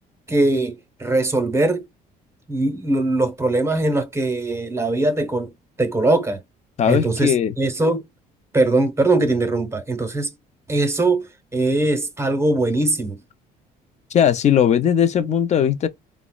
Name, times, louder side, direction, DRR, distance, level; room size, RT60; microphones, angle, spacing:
voice 1, 0.3-1.9 2.5-5.5 5.8-6.4 6.9-8.1 8.5-10.3 10.7-13.2, right 2 dB, 15° right, 0.9 m, -21 dB
voice 2, 6.8-7.5 14.1-15.9, left 8 dB, 40° left, 0.6 m, -18 dB
4.0 x 2.1 x 2.3 m
cardioid pair, 110°, 17 cm